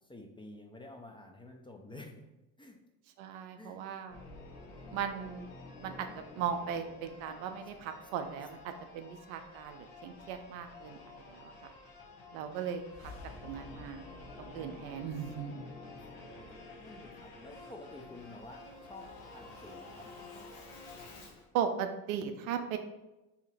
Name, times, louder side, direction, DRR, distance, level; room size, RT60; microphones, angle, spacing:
voice 1, 0.1-2.3 2.6-2.8 3.6-3.8 15.9-16.2 16.8-20.1, left 2 dB, 10° left, 2 dB, 0.4 m, -50 dB
voice 2, 3.2-4.2 4.9-5.5 5.8-11.5 12.3-13.1 13.4-14.1 14.4-15.6 21.5-22.8, right 7 dB, 75° right, 7 dB, 0.5 m, -37 dB
Singing / Musical instrument, 4.1-21.5, left 3 dB, 70° left, 1.0 m, -50 dB
2.8 x 2.8 x 4.0 m, 0.98 s
hypercardioid pair, 60°, 44 cm